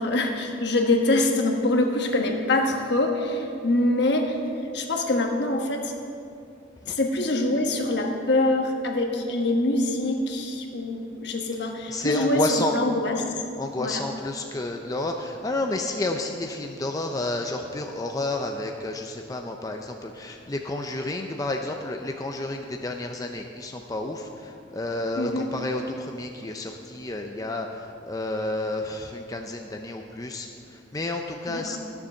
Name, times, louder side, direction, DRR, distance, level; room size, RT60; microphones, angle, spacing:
voice 1, 0.0-4.4 4.7-5.9 6.9-13.2 13.8-14.0 25.2-25.5 31.5-31.8, left 2 dB, 65° left, 2 dB, 1.3 m, -24 dB
voice 2, 11.9-12.7 13.6-31.8, left 2 dB, 20° left, 3 dB, 0.5 m, -30 dB
12.5 x 7.2 x 6.4 m, 2.6 s
head